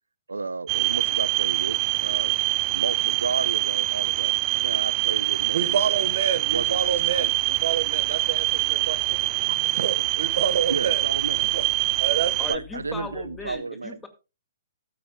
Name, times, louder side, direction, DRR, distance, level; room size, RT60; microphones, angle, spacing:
voice 1, 0.3-2.3 2.7-6.0 6.5-7.3 9.1-9.2 9.5-9.6 10.0-10.3 10.7-11.5 12.5-14.0, right 4 dB, 80° right, 0.8 m, -33 dB
sound 1, 0.7-12.6, right 22 dB, 30° right, 0.5 m, -24 dB
voice 2, 5.5-9.2 9.7-11.0 11.4-11.6 12.0-12.5, right 7 dB, 55° right, 1.5 m, -28 dB
sound 2, 6.4-13.5, left 11 dB, 65° left, 7.6 m, -48 dB
voice 3, 12.4-14.1, left 3 dB, 10° left, 2.2 m, -37 dB
14.5 x 13.0 x 2.3 m
figure-of-eight pair, 120°, 0 cm